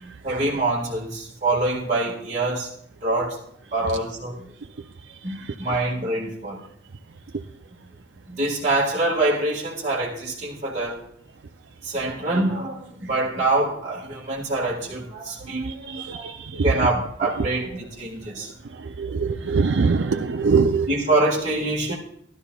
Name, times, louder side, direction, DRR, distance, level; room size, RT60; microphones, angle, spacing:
voice 1, 0.0-2.7 3.0-3.4 3.7-4.5 5.2-6.6 8.3-11.0 11.8-16.3 16.6-18.5 20.9-22.0, right 2 dB, 40° right, 1.7 m, -25 dB
voice 2, 19.0-20.9, right 5 dB, 70° right, 0.5 m, -21 dB
17.5 x 12.0 x 2.3 m
head